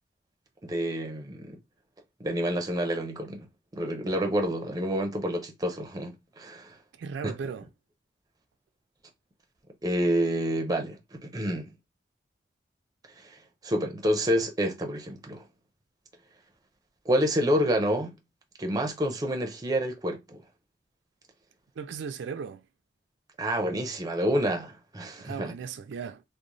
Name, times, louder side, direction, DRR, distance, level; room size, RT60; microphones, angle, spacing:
voice 1, 0.6-1.6 2.2-3.5 3.7-6.8 7.2-7.3 9.8-11.7 13.2-13.4 13.6-15.4 17.1-18.1 18.6-20.4 23.4-25.5, equal, 20° right, 0.4 m, -28 dB
voice 2, 7.0-7.7 21.8-22.6 25.2-26.2, right 6 dB, 80° right, 0.3 m, -36 dB
2.9 x 2.0 x 2.5 m
head